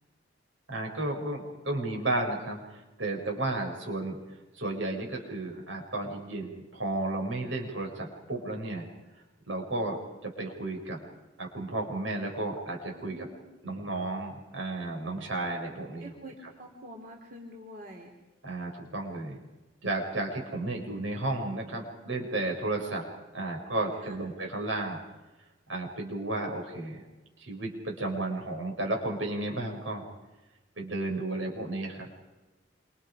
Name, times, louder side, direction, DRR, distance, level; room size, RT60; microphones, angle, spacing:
voice 1, 0.7-4.2 4.5-8.9 9.5-11.0 11.4-13.3 13.6-16.1 18.4-19.4 19.8-25.0 25.7-27.0 27.4-30.0 30.8-32.1, right 2 dB, 80° right, 1 dB, 7.2 m, -33 dB
voice 2, 12.9-13.4 16.0-18.1 20.5-20.6 24.0-24.2, equal, 45° right, 0 dB, 3.7 m, -46 dB
28.5 x 28.0 x 5.2 m, 1.1 s
head